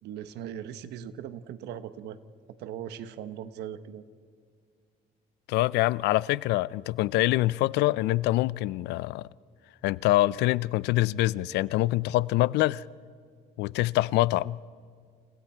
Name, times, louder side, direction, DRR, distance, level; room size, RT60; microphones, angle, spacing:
voice 1, 0.0-2.2 2.6-4.0, right 9 dB, 80° right, 1.3 m, -39 dB
voice 2, 5.5-9.2 9.8-12.8 13.6-14.6, left 17 dB, 85° left, 0.5 m, -25 dB
30.0 x 29.0 x 4.5 m
cardioid pair, 110°, 17 cm